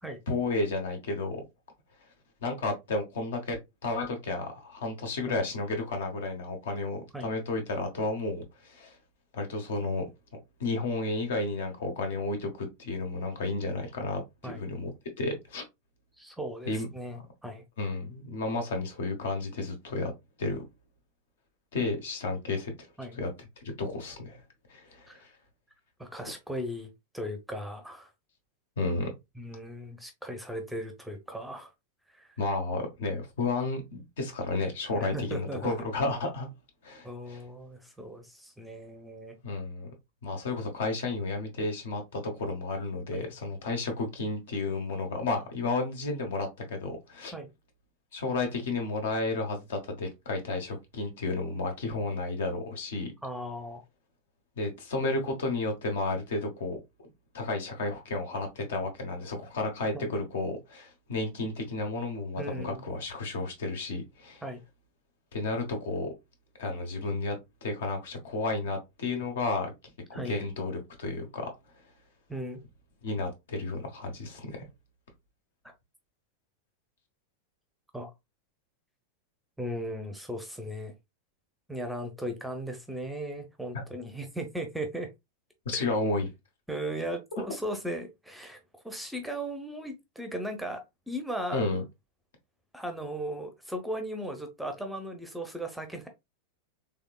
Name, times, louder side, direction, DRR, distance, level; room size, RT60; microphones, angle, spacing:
voice 1, 0.3-1.4 2.4-9.0 9.3-10.0 10.6-14.9 15.2-15.6 16.7-16.9 17.8-20.1 20.4-20.6 21.7-22.7 23.1-23.3 23.8-24.4 24.7-25.3 28.8-29.1 32.4-36.5 36.8-37.4 39.4-39.9 40.2-47.3 48.1-53.1 54.6-56.8 57.3-64.4 65.3-66.1 66.6-67.3 67.6-69.7 70.1-71.5 73.0-74.6 85.6-86.3 91.5-91.8, left 3 dB, 60° left, 1.1 m, -32 dB
voice 2, 16.2-17.6 23.0-23.2 25.1-25.2 26.0-28.1 29.4-31.7 32.1-32.4 34.9-35.8 37.0-39.4 43.1-43.3 47.3-47.5 53.2-53.8 59.9-60.1 62.4-62.8 64.4-64.6 70.1-70.4 72.3-72.6 77.9-78.1 79.6-80.9 81.7-85.1 85.7-85.9 86.7-91.6 92.7-96.1, equal, ahead, 0.7 m, -37 dB
3.5 x 3.4 x 2.3 m
figure-of-eight pair, 90°, 0 cm